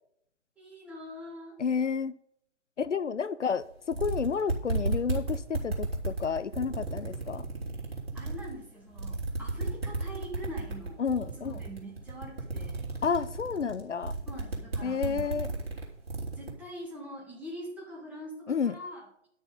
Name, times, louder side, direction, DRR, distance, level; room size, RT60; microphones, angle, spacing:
voice 1, 0.6-1.6 8.1-12.9 14.3-15.4 16.3-19.1, equal, 5° right, 1.5 m, -44 dB
voice 2, 1.6-2.2 2.8-7.4 11.0-11.6 13.0-14.2 14.8-15.5 18.5-18.8, left 6 dB, 75° left, 0.7 m, -30 dB
sound 1, 3.6-3.7 3.9-8.5 8.9-16.5, right 3 dB, 55° right, 3.4 m, -33 dB
10.5 x 6.4 x 5.4 m
figure-of-eight pair, 145°, 36 cm